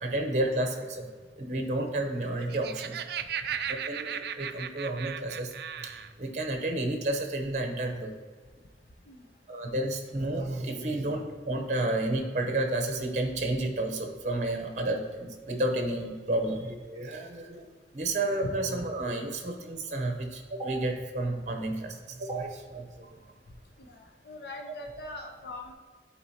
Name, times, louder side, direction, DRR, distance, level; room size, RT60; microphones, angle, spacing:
voice 1, 0.0-1.1 1.4-2.9 3.7-5.5 5.8-5.9 6.2-8.1 9.5-17.6 17.9-21.9 22.2-22.8, right 1 dB, 40° right, 4 dB, 0.8 m, -31 dB
Laughter, 2.3-6.1, right 8 dB, 60° right, 0.3 m, -36 dB
voice 2, 18.4-18.8 23.8-25.7, left 2 dB, 65° left, 2 dB, 0.7 m, -41 dB
10.0 x 4.4 x 2.8 m, 1.5 s
head